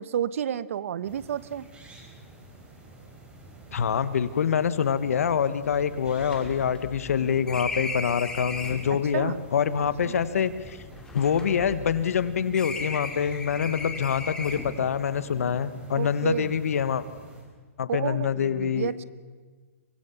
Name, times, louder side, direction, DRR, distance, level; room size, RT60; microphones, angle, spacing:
voice 1, 0.0-1.6 9.1-9.5 10.0-10.2 16.0-16.5 17.9-19.0, right 9 dB, 65° right, 18 dB, 0.9 m, -31 dB
sound 1, 1.0-17.4, right 1 dB, 15° right, 4.6 m, -49 dB
voice 2, 3.7-10.8 11.1-17.0 17.8-18.9, left 7 dB, 75° left, 14 dB, 1.4 m, -25 dB
sound 2, 4.8-4.9 5.2-5.3 5.6-8.9 9.8-12.2 12.5-14.9, left 3 dB, 10° left, 2.6 m, -37 dB
24.5 x 19.0 x 7.2 m, 1.4 s
hypercardioid pair, 140°, 8 cm